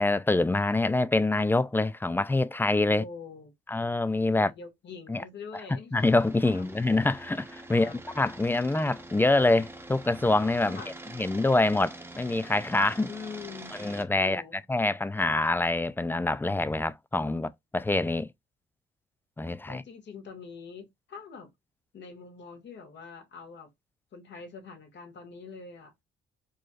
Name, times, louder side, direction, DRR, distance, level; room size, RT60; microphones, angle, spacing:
voice 1, 0.0-3.0 3.7-4.5 5.1-5.2 5.9-10.8 11.2-13.1 13.8-14.4 14.7-18.3 19.4-19.8, left 2 dB, 10° left, 0.4 m, -25 dB
voice 2, 2.9-3.5 4.3-5.9 6.4-6.7 7.7-8.0 10.6-10.9 13.1-13.7 14.2-14.6 19.7-21.5 21.9-23.7 24.1-25.9, left 5 dB, 60° left, 2.0 m, -44 dB
sound 1, 5.9-14.1, right 1 dB, 10° right, 1.0 m, -45 dB
4.7 x 3.1 x 2.4 m
cardioid pair, 90°, 20 cm